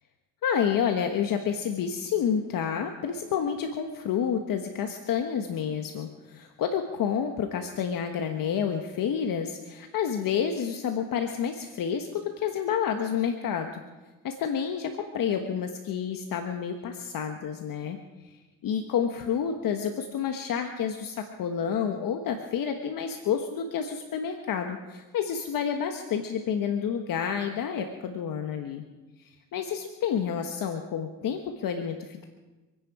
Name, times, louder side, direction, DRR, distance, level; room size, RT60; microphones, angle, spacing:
voice 1, 0.4-13.8 14.2-18.0 18.2-18.3 18.6-28.8 29.2-32.2, left 7 dB, 65° left, 5 dB, 1.3 m, -29 dB
26.5 x 10.5 x 4.8 m, 1.2 s
cardioid pair, 85°, 36 cm